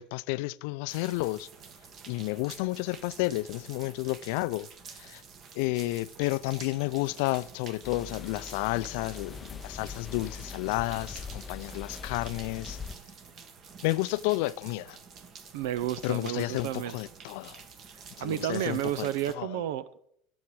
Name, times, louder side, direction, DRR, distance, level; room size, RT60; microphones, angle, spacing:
voice 1, 0.0-1.5 2.1-4.7 4.9-5.2 5.5-12.8 13.8-15.0 16.0-17.6 18.2-19.6, left 20 dB, 75° left, 0.4 m, -31 dB
sound 1, 0.9-19.3, right 5 dB, 40° right, 1.4 m, -49 dB
sound 2, 7.8-13.0, left 5 dB, 20° left, 0.5 m, -42 dB
voice 2, 15.5-16.9 18.2-20.0, right 12 dB, 90° right, 0.6 m, -31 dB
16.0 x 7.2 x 4.7 m
cardioid pair, 145°, 0 cm